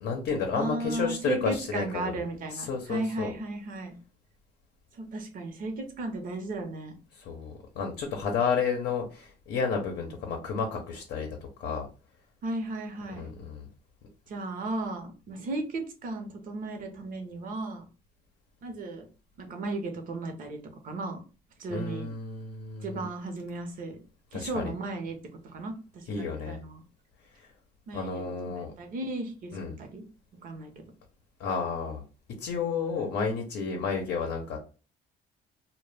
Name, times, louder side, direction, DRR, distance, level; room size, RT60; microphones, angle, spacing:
voice 1, 0.0-2.1 2.5-3.3 7.1-11.9 13.2-13.7 21.7-23.1 24.3-24.7 26.1-26.6 27.3-27.5 27.9-28.7 29.5-29.8 31.4-32.0 32.4-34.6, left 5 dB, 70° left, 3 dB, 0.6 m, -31 dB
voice 2, 0.5-4.0 4.9-6.9 12.4-13.3 14.3-17.8 18.6-19.1 19.4-21.2 21.6-22.1 22.8-24.0 24.3-25.2 25.4-26.8 27.9-30.0 30.4-30.8, right 2 dB, 55° right, 5 dB, 0.7 m, -35 dB
2.1 x 2.1 x 3.2 m, 0.36 s
cardioid pair, 110°, 17 cm